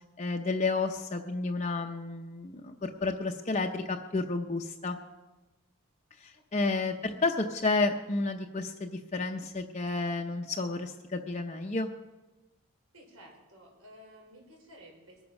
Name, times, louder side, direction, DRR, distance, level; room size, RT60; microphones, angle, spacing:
voice 1, 0.2-5.0 6.2-11.9, left 3 dB, 30° left, 3 dB, 0.7 m, -31 dB
voice 2, 12.9-15.2, equal, 80° right, 0 dB, 4.9 m, -54 dB
21.5 x 9.5 x 5.9 m, 1.1 s
head